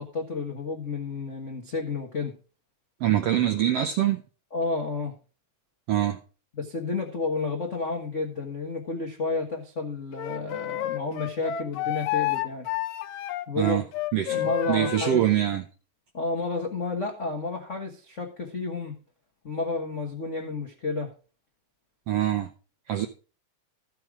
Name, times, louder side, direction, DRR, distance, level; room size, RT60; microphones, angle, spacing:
voice 1, 0.0-2.3 4.5-5.1 6.5-12.7 13.5-13.8 14.3-15.2 16.1-18.9 19.4-21.1, left 3 dB, 65° left, 0.7 m, -31 dB
voice 2, 3.0-4.2 5.9-6.2 13.6-13.8 14.1-15.6 22.1-22.5 22.9-23.1, right 12 dB, 80° right, 1.4 m, -24 dB
Wind instrument woodwind instrument, 10.1-15.2, left 13 dB, 80° left, 1.7 m, -30 dB
14.0 x 5.8 x 4.8 m
omnidirectional pair, 3.7 m